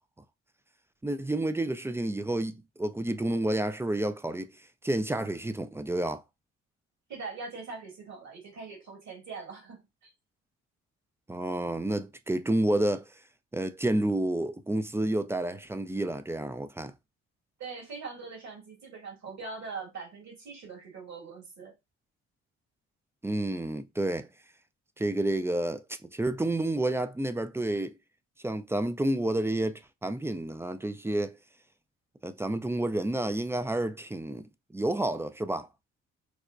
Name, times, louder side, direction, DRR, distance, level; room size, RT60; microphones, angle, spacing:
voice 1, 1.0-4.5 4.8-6.2 11.3-13.0 13.5-16.9 23.2-24.3 25.0-27.9 28.4-31.4 32.2-35.7, right 1 dB, 10° right, 0.3 m, -30 dB
voice 2, 7.1-10.1 17.6-21.7, right 4 dB, 55° right, 2.1 m, -42 dB
4.7 x 2.1 x 2.5 m
hypercardioid pair, 55°, 33 cm